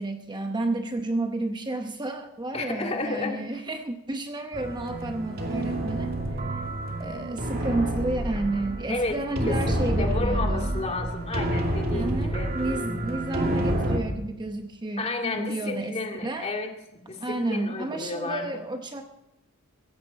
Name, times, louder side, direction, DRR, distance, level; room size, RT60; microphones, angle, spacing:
voice 1, 0.0-6.1 7.0-10.7 11.9-15.9 16.2-16.5 17.2-19.0, right 2 dB, 20° right, 6 dB, 0.8 m, -31 dB
voice 2, 2.5-3.6 8.9-12.5 15.0-18.5, left 2 dB, 30° left, 2 dB, 2.2 m, -32 dB
sound 1, 4.5-14.0, right 1 dB, 45° right, 2.5 m, -28 dB
17.0 x 15.0 x 4.2 m, 0.89 s
head